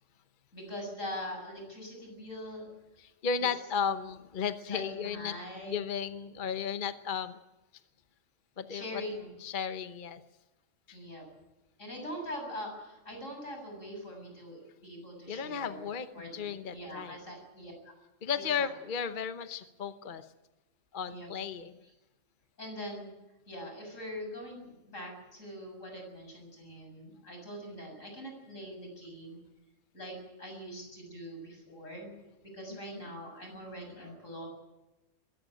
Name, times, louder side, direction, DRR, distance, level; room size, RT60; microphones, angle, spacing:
voice 1, 0.5-2.7 4.7-5.7 8.7-9.3 10.9-11.3 11.8-15.9 16.1-17.9 18.3-18.7 21.1-21.3 22.6-23.1 23.5-29.4 29.9-32.2 32.5-34.5, equal, 85° left, 3 dB, 7.8 m, -43 dB
voice 2, 3.0-5.4 5.7-7.4 8.6-9.0 9.4-10.2 10.9-11.0 15.3-17.2 18.2-20.3 20.9-21.7 32.7-33.0, left 6 dB, 45° left, 9 dB, 1.0 m, -34 dB
22.0 x 16.5 x 8.9 m, 0.99 s
omnidirectional pair, 1.3 m